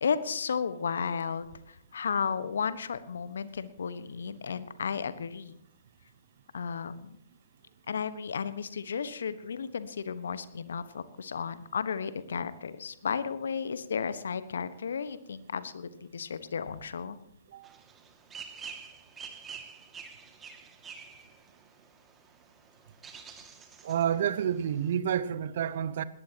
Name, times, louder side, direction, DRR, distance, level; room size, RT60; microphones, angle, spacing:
voice 1, 0.0-5.6 6.5-7.2 7.9-17.2, left 6 dB, 65° left, 1.3 m, -33 dB
sound 1, 17.6-25.0, right 6 dB, 15° right, 2.2 m, -48 dB
voice 2, 23.8-26.0, right 9 dB, 55° right, 0.9 m, -29 dB
20.5 x 18.0 x 3.0 m
figure-of-eight pair, 120°, 0 cm